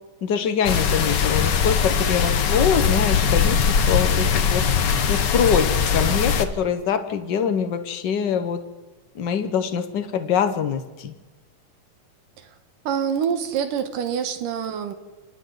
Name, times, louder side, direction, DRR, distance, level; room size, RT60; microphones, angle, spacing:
voice 1, 0.2-4.6 5.1-8.6 9.1-11.1, left 7 dB, 55° left, 8 dB, 1.2 m, -24 dB
sound 1, 0.6-6.4, left 6 dB, 80° left, 0.9 m, -20 dB
voice 2, 12.9-14.9, right 7 dB, 85° right, 7 dB, 3.0 m, -25 dB
28.0 x 27.0 x 4.0 m, 1.2 s
omnidirectional pair, 3.7 m